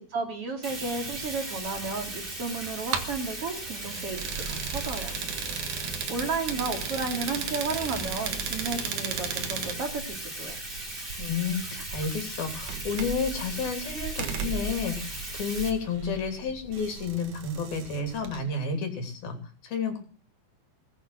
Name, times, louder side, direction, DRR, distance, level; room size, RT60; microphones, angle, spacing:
voice 1, 0.1-5.1 6.1-10.6, right 4 dB, 40° right, 5 dB, 3.0 m, -33 dB
Bathtub (filling or washing), 0.6-15.7, right 1 dB, 15° right, 2.9 m, -38 dB
sound 1, 0.7-18.4, right 6 dB, 60° right, 2.5 m, -37 dB
voice 2, 11.2-19.4 19.6-20.0, left 5 dB, 65° left, 5 dB, 4.8 m, -31 dB
20.0 x 8.8 x 7.5 m, 0.40 s
omnidirectional pair, 4.7 m